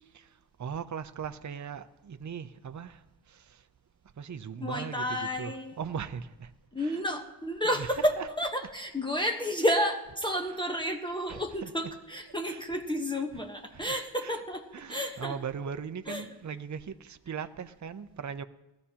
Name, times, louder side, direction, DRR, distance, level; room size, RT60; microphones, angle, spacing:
voice 1, 0.6-3.6 4.2-6.5 6.8-7.0 7.6-8.7 9.6-9.8 10.5-10.6 11.3-12.0 12.4-12.6 13.1-13.4 13.7-14.4 14.7-18.4, right 7 dB, 45° right, 0.6 m, -39 dB
voice 2, 4.6-5.8 6.7-8.1 8.4-15.3 16.1-16.2, equal, 10° left, 1.0 m, -31 dB
19.5 x 14.0 x 2.8 m
wide cardioid pair, 95°, 40 cm